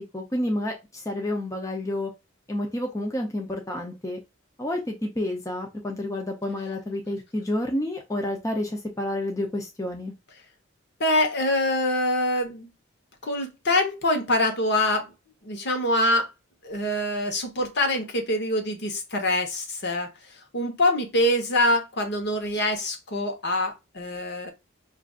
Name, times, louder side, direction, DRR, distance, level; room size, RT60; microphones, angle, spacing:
voice 1, 0.1-2.1 2.5-4.2 4.6-10.1, left 1 dB, 15° left, 0.5 m, -29 dB
voice 2, 11.0-12.7 13.2-15.1 15.4-16.3 16.6-24.5, left 1 dB, 55° left, 1.0 m, -25 dB
5.6 x 2.5 x 2.4 m
head